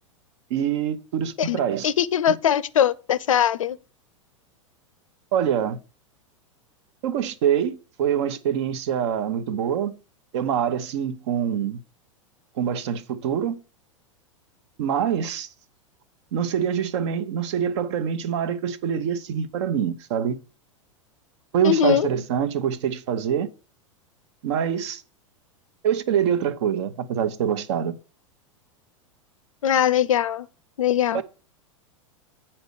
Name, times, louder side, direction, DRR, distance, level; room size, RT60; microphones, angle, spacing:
voice 1, 0.5-1.9 5.3-5.8 7.0-10.0 10.3-11.8 12.6-13.6 14.8-15.5 16.3-20.4 21.5-23.5 24.4-25.0 25.8-27.9 31.1-31.2, right 8 dB, 55° right, 0.9 m, -25 dB
voice 2, 1.4-3.8 21.6-22.1 29.6-30.5 30.8-31.2, left 9 dB, 75° left, 0.5 m, -21 dB
7.9 x 4.3 x 6.7 m
figure-of-eight pair, 95°, 17 cm